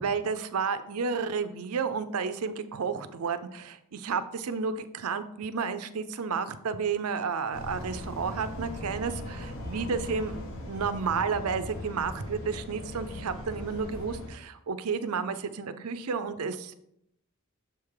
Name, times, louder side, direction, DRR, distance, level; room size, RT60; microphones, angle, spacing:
voice 1, 0.0-16.7, right 5 dB, 80° right, 11 dB, 0.5 m, -31 dB
sound 1, 7.5-14.3, left 1 dB, 60° left, 1.0 m, -39 dB
7.1 x 3.5 x 4.8 m, 0.75 s
head